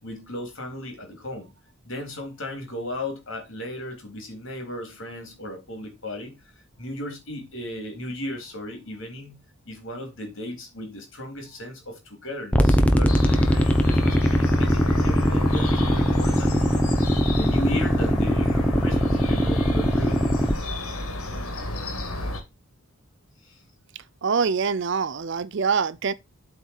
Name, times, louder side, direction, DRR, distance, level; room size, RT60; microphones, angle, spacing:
voice 1, 0.0-1.5 1.8-6.3 6.8-9.3 9.7-16.6 17.3-20.3 23.4-23.6, left 1 dB, 60° left, 3.7 m, -35 dB
sound 1, 12.5-20.5, equal, 5° left, 0.9 m, -21 dB
sound 2, 13.1-22.4, left 1 dB, 80° left, 2.8 m, -31 dB
voice 2, 24.2-26.1, right 5 dB, 55° right, 0.5 m, -24 dB
8.2 x 4.6 x 5.6 m
head